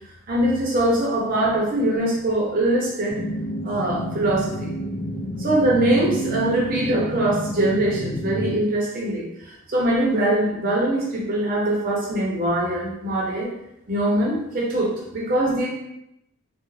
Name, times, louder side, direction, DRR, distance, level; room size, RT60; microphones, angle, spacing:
voice 1, 0.3-3.2 3.6-4.7 5.4-13.5 13.9-15.7, right 1 dB, 45° right, -3 dB, 0.6 m, -22 dB
sound 1, 3.1-8.6, equal, 35° left, 0.3 m, -29 dB
2.3 x 2.0 x 3.1 m, 0.84 s
head